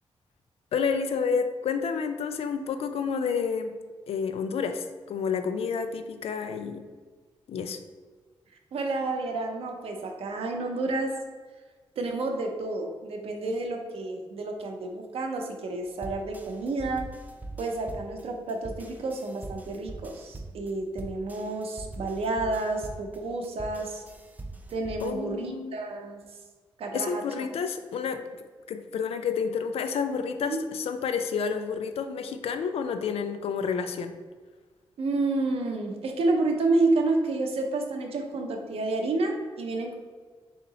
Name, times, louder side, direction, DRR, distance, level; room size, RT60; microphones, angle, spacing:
voice 1, 0.7-3.7 4.1-6.8 7.5-7.8 25.0-25.8 26.9-28.2 28.7-34.1, left 6 dB, 80° left, 8 dB, 0.4 m, -30 dB
voice 2, 8.7-11.2 12.0-17.0 17.6-24.0 24.7-26.2 26.8-27.5 30.5-30.6 35.0-40.0, right 2 dB, 75° right, 3 dB, 0.6 m, -30 dB
sound 1, 16.0-25.1, right 2 dB, 15° right, 0.4 m, -42 dB
3.7 x 2.8 x 4.0 m, 1.5 s
cardioid pair, 105°, 10 cm